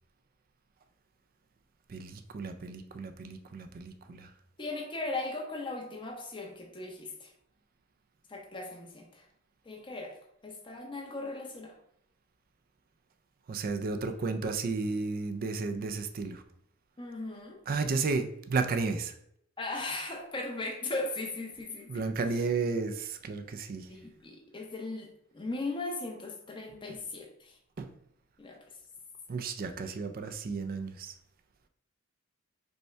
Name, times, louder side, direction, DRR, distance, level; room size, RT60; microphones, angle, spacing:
voice 1, 1.9-4.3 13.5-16.4 17.7-19.1 21.9-23.9 27.8-27.9 29.3-31.1, right 4 dB, 45° right, 0.4 m, -33 dB
voice 2, 4.6-7.3 8.3-9.2 9.6-10.2 10.4-11.7 17.0-17.6 19.6-22.1 22.3-22.4 23.9-25.1 25.3-27.6 28.4-28.6, left 2 dB, 25° left, 0.8 m, -38 dB
5.2 x 2.2 x 4.4 m
head